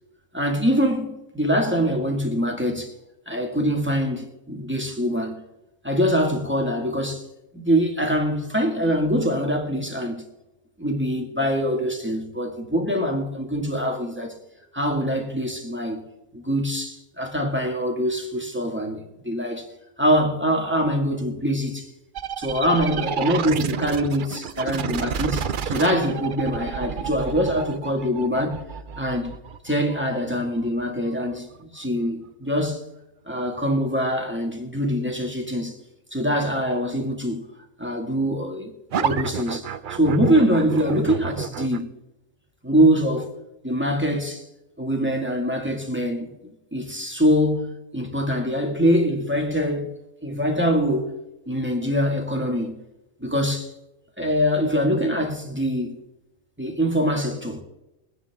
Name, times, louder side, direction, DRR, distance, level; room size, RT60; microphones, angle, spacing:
voice 1, 0.3-1.1 1.3-2.9 3.3-5.4 5.8-7.3 7.5-10.2 10.8-14.3 14.7-16.0 16.3-19.7 20.0-21.9 22.4-28.6 29.0-29.3 29.6-32.8 33.3-35.8 36.1-37.4 37.8-41.9 42.6-43.3 43.6-44.4 44.8-46.3 46.7-49.9 50.2-51.1 51.5-52.7 53.2-53.7 54.2-56.0 56.6-57.6, equal, 5° right, 1.9 m, -24 dB
sound 1, 22.1-31.6 38.9-41.8, right 8 dB, 60° right, 0.5 m, -30 dB
23.0 x 10.0 x 3.6 m
omnidirectional pair, 1.6 m